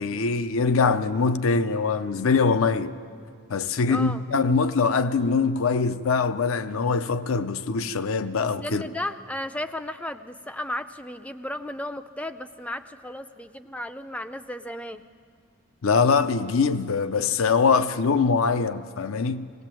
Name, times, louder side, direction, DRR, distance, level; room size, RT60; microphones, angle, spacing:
voice 1, 0.0-3.0 3.5-8.8 15.8-19.5, left 4 dB, 70° left, 0.6 m, -23 dB
voice 2, 3.9-4.2 8.4-15.0, left 1 dB, 5° left, 0.4 m, -34 dB
19.5 x 18.0 x 7.6 m
head